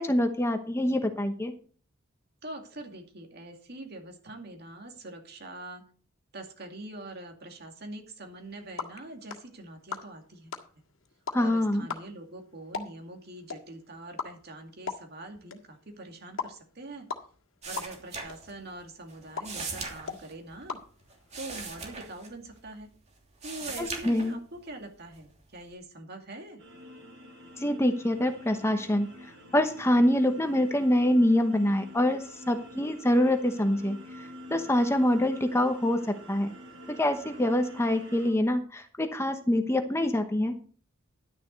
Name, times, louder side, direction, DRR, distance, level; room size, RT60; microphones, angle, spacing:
voice 1, 0.0-1.5 11.3-11.9 23.8-24.4 27.6-29.1 29.5-36.0 36.3-36.5 36.9-40.5, left 1 dB, 15° left, 7 dB, 0.9 m, -25 dB
voice 2, 2.4-5.8 6.3-10.6 11.4-17.1 17.7-20.8 21.4-22.9 23.4-26.6, right 2 dB, 50° right, 3 dB, 2.4 m, -44 dB
sound 1, 8.3-21.6, left 5 dB, 75° left, 1.8 m, -42 dB
sound 2, 17.6-18.8 19.1-22.9 23.2-24.7 25.1-25.7, right 4 dB, 35° right, 3.0 m, -40 dB
sound 3, 26.6-38.3, equal, 70° right, 4.7 m, -47 dB
11.5 x 10.0 x 4.0 m, 0.42 s
head